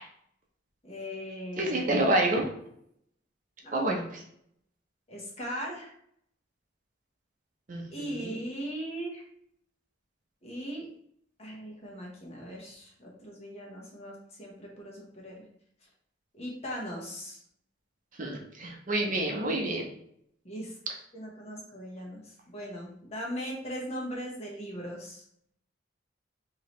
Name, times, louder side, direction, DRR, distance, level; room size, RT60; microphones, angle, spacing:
voice 1, 0.8-2.2 3.6-4.0 5.1-5.9 7.9-9.2 10.4-10.9 11.4-15.4 16.3-17.4 20.4-20.7 21.1-25.2, equal, 35° left, -2 dB, 1.0 m, -39 dB
voice 2, 1.6-2.5 3.7-4.2 7.7-8.4 18.2-19.9, right 1 dB, 45° right, 1 dB, 0.6 m, -28 dB
4.6 x 2.8 x 3.1 m, 0.69 s
head